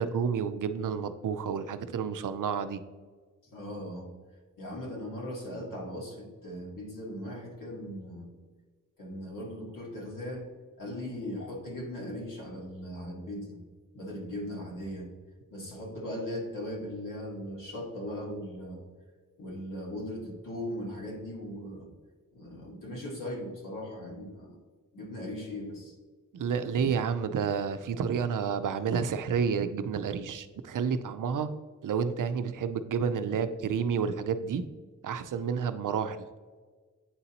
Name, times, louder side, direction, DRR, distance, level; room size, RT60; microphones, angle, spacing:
voice 1, 0.0-2.8 26.3-31.5 31.8-34.7 35.0-36.2, right 6 dB, 70° right, 11 dB, 0.5 m, -30 dB
voice 2, 3.4-4.1 4.6-8.3 9.0-10.5 10.8-13.6 13.9-15.1 15.5-18.8 19.4-21.9 22.3-24.6 24.9-26.0, left 1 dB, 75° left, -3 dB, 1.8 m, -38 dB
8.8 x 4.0 x 2.8 m, 1.5 s
wide cardioid pair, 125°, 32 cm